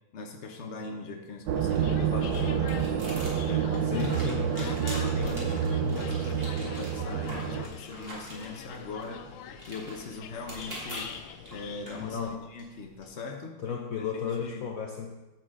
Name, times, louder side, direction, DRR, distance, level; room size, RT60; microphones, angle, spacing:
voice 1, 0.1-2.9 3.4-9.3 9.7-11.1 11.5-13.6 14.0-14.7, left 3 dB, 45° left, 3 dB, 1.1 m, -41 dB
sound 1, 1.3-13.0, equal, 30° right, 2.3 m, -45 dB
sound 2, 1.5-7.7, right 7 dB, 75° right, 1.3 m, -28 dB
sound 3, 1.6-12.4, left 8 dB, 90° left, 1.4 m, -45 dB
voice 2, 1.9-2.7 3.8-4.4 5.0-5.1 12.0-12.4 13.6-15.1, left 6 dB, 65° left, 2 dB, 0.9 m, -34 dB
10.0 x 7.5 x 3.7 m, 1.1 s
omnidirectional pair, 2.1 m